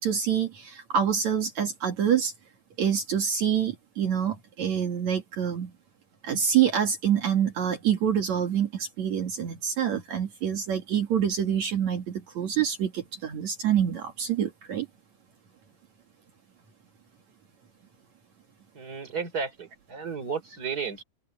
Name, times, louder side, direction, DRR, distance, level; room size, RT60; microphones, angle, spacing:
voice 1, 0.0-2.3 2.8-5.7 6.2-14.9, right 8 dB, 60° right, 3.0 m, -26 dB
voice 2, 18.7-21.0, right 5 dB, 30° right, 3.2 m, -33 dB
open air
omnidirectional pair, 4.0 m